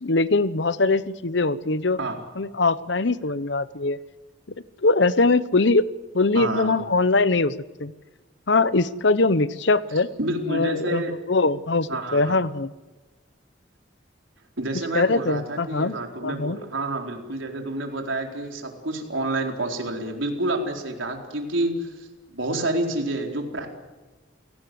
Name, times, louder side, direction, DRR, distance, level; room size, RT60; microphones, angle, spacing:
voice 1, 0.0-2.0 2.4-4.0 4.8-5.9 6.1-7.5 7.8-7.9 8.5-10.1 10.5-12.7 14.9-15.9 16.2-16.6, left 3 dB, 65° left, 16 dB, 0.9 m, -22 dB
voice 2, 6.3-6.9 10.2-11.1 11.9-12.4 14.6-23.7, right 2 dB, 80° right, 2 dB, 4.3 m, -28 dB
29.0 x 18.0 x 7.8 m, 1.3 s
head